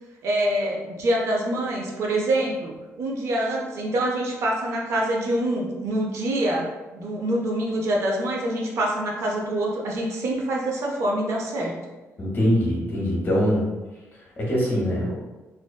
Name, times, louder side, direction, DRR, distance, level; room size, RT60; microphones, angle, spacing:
voice 1, 0.2-11.8, right 1 dB, 60° right, -1 dB, 0.5 m, -25 dB
voice 2, 12.2-13.6 14.4-15.1, equal, 40° left, -4 dB, 0.8 m, -23 dB
2.5 x 2.2 x 2.2 m, 1.1 s
cardioid pair, 150°, 5 cm